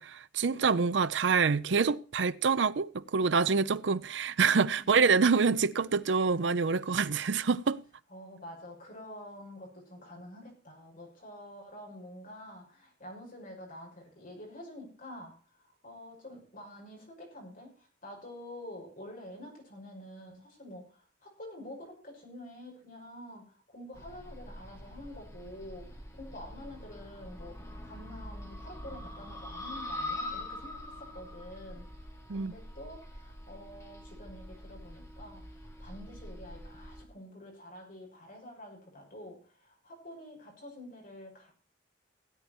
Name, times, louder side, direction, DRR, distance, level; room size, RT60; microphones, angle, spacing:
voice 1, 0.0-7.8 32.3-32.5, right 5 dB, 75° right, 0.6 m, -26 dB
voice 2, 8.1-31.9 32.3-41.5, left 1 dB, 50° left, 6.3 m, -48 dB
sound 1, 23.9-37.0, left 1 dB, 15° left, 1.9 m, -44 dB
16.5 x 9.2 x 4.5 m
head